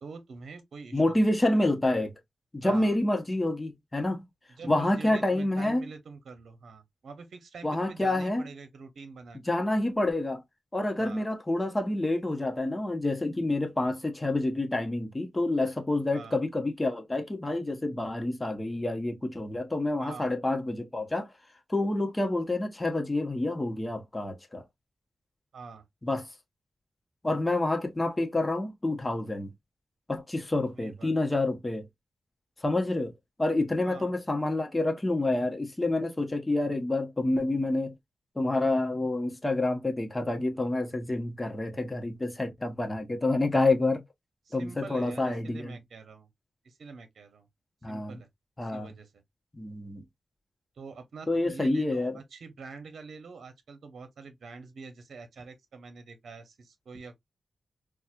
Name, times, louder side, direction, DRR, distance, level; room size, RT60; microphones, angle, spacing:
voice 1, 0.0-1.3 2.6-3.0 4.6-9.4 11.0-11.3 16.1-16.4 20.0-20.3 25.5-25.8 30.8-31.1 33.8-34.1 44.5-46.3 46.6-47.5 47.9-48.3 48.6-49.1 50.8-57.2, right 4 dB, 80° right, 0.7 m, -45 dB
voice 2, 0.9-2.1 2.5-4.2 4.7-5.8 7.6-8.5 9.5-10.4 10.7-21.3 21.7-24.6 26.0-26.3 27.2-29.5 30.1-31.9 32.6-33.1 33.4-37.9 38.4-44.0 44.5-45.8 47.8-48.2 48.6-48.9 49.5-50.0 51.3-52.2, left 2 dB, 20° left, 1.0 m, -28 dB
4.2 x 2.4 x 2.4 m
cardioid pair, 60°, 0 cm